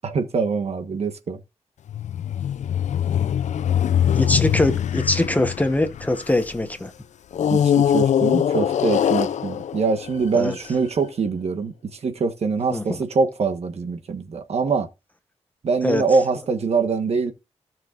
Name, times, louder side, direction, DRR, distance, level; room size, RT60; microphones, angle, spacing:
voice 1, 0.0-1.4 7.5-14.9 15.6-17.3, right 4 dB, 60° right, 1.2 m, -24 dB
sound 1, 1.9-6.6 7.3-10.7, left 9 dB, 85° left, 0.4 m, -22 dB
voice 2, 4.1-6.9 10.3-10.6 12.7-13.0 15.8-16.0, left 1 dB, 15° left, 0.9 m, -22 dB
16.0 x 6.1 x 2.5 m
wide cardioid pair, 160°, 12 cm